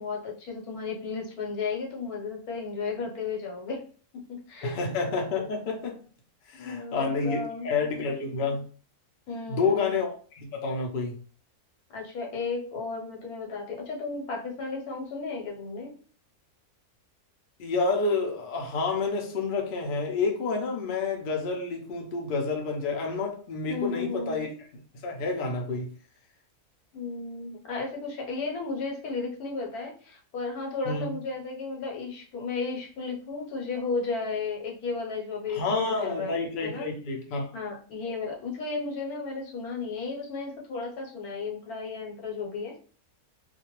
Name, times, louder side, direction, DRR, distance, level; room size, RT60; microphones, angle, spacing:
voice 1, 0.0-3.9 4.3-4.8 6.5-7.7 9.3-9.9 11.9-15.9 23.7-24.4 26.9-36.3 36.6-36.9 37.5-42.8, left 4 dB, 75° left, 0 dB, 1.2 m, -34 dB
voice 2, 4.6-6.0 6.5-8.6 9.5-11.2 17.6-24.5 25.0-25.9 30.8-31.1 35.5-37.5, left 4 dB, 55° left, 1 dB, 0.6 m, -29 dB
2.5 x 2.2 x 2.9 m, 0.40 s
omnidirectional pair, 1.6 m